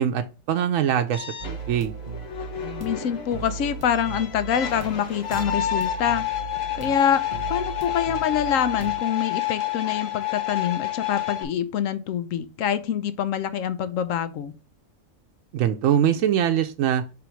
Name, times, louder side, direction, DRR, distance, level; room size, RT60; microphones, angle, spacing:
voice 1, 0.0-1.9 15.5-17.0, right 9 dB, 90° right, 1.0 m, -23 dB
sound 1, 1.1-11.4, left 12 dB, 55° left, 1.1 m, -30 dB
sound 2, 1.4-9.0, right 5 dB, 35° right, 0.8 m, -37 dB
voice 2, 2.8-6.2 6.8-14.5, left 9 dB, 85° left, 1.1 m, -25 dB
6.1 x 3.5 x 4.5 m
omnidirectional pair, 1.3 m